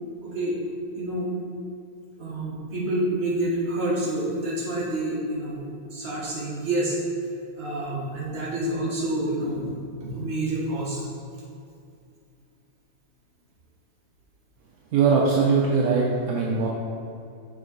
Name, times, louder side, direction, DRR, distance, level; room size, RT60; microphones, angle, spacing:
voice 1, 0.2-0.6 0.9-1.3 2.2-7.0 7.6-9.7 10.0-11.0, right 1 dB, 35° right, -5 dB, 1.3 m, -28 dB
voice 2, 14.9-16.7, right 5 dB, 70° right, -3 dB, 0.9 m, -21 dB
6.4 x 4.1 x 3.9 m, 2.4 s
omnidirectional pair, 2.1 m